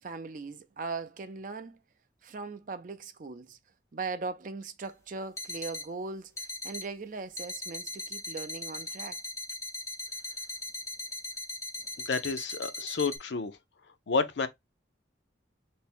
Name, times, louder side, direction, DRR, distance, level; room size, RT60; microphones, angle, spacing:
voice 1, 0.0-1.8 2.2-3.6 3.9-9.2, right 4 dB, 45° right, 0.4 m, -39 dB
sound 1, 4.8-4.9 5.4-5.9 6.4-6.9 7.4-13.2, left 2 dB, 15° left, 0.5 m, -39 dB
voice 2, 12.0-13.6 14.1-14.5, left 4 dB, 70° left, 0.5 m, -30 dB
3.4 x 2.1 x 4.2 m
head